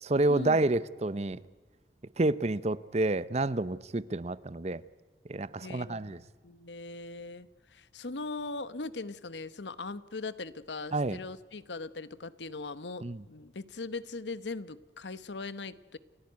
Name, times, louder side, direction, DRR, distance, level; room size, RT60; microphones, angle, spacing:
voice 1, 0.0-1.4 2.2-4.8 5.3-6.2 10.9-11.2 13.0-13.2, right 2 dB, 35° right, 0.7 m, -29 dB
voice 2, 5.6-16.0, left 3 dB, 75° left, 1.0 m, -40 dB
29.5 x 15.0 x 9.7 m
head